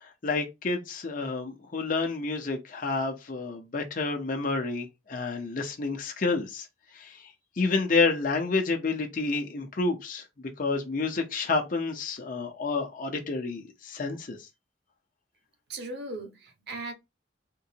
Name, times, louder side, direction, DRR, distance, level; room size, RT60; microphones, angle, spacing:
voice 1, 0.0-6.7 6.9-7.2 7.6-14.4, left 3 dB, 45° left, 0.7 m, -29 dB
voice 2, 15.7-16.9, right 2 dB, 60° right, 1.0 m, -37 dB
3.7 x 2.5 x 2.8 m
head